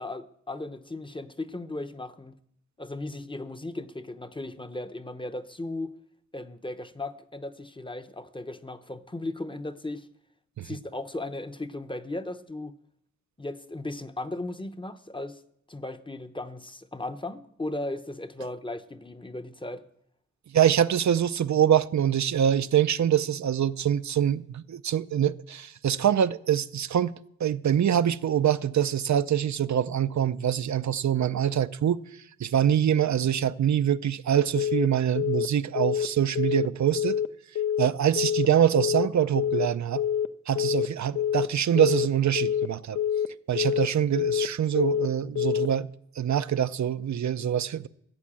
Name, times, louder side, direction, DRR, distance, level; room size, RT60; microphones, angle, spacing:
voice 1, 0.0-2.3 2.8-5.9 6.3-10.1 10.6-12.8 13.4-15.4 15.7-19.8, left 2 dB, 15° left, 0.7 m, -36 dB
voice 2, 20.5-27.1 27.4-32.0 32.4-37.2 37.8-40.0 40.5-43.0 43.5-45.9 46.2-47.9, right 9 dB, 70° right, 0.5 m, -24 dB
Telephone, 34.6-34.9 35.2-35.5 35.8-36.1 36.4-36.7 37.0-37.3 37.6-37.9 38.2-38.5 38.8-39.1 39.4-39.7 40.0-40.3 40.6-40.9 41.2-41.5 41.8-42.1 42.4-42.7 43.0-43.3 43.6-43.9 44.2-44.5 44.8-45.1 45.4-45.7, left 9 dB, 65° left, 0.5 m, -26 dB
15.0 x 7.3 x 8.6 m
wide cardioid pair, 105°, 30 cm